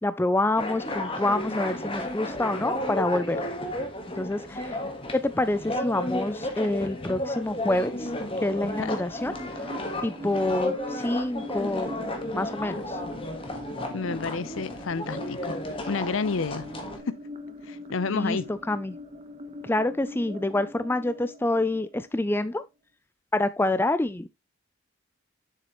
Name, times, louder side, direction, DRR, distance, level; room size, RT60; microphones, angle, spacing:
voice 1, 0.0-3.4 4.1-4.8 5.1-8.1 8.4-9.3 10.0-13.0 18.1-19.0 19.6-22.6 23.3-24.3, left 2 dB, 10° left, 0.4 m, -27 dB
sound 1, 0.6-17.0, left 1 dB, 25° left, 1.4 m, -33 dB
sound 2, 7.7-22.6, left 1 dB, 30° right, 1.1 m, -43 dB
voice 2, 8.6-8.9 13.9-15.6 15.9-16.7 17.1-17.2 17.6-18.5, left 4 dB, 70° left, 0.6 m, -30 dB
7.3 x 6.8 x 3.0 m
head